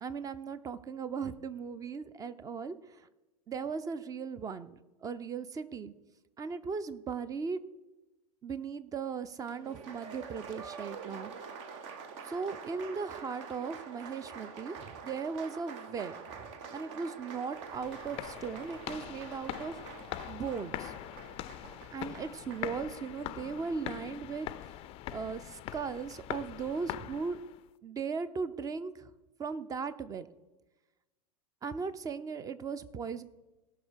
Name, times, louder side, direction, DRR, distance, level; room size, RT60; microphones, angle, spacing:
voice 1, 0.0-3.0 3.5-5.9 6.4-7.6 8.4-11.3 12.3-16.2 16.7-19.8 20.3-20.9 21.9-24.8 25.1-27.4 27.8-29.1 29.4-30.3 31.6-33.2, right 5 dB, 20° right, 15 dB, 0.6 m, -38 dB
Applause, 9.5-22.7, right 5 dB, 50° right, 1.1 m, -46 dB
sound 1, 17.6-27.6, left 14 dB, 30° left, 0.4 m, -43 dB
17.0 x 5.9 x 4.6 m, 1.1 s
figure-of-eight pair, 90°, 20 cm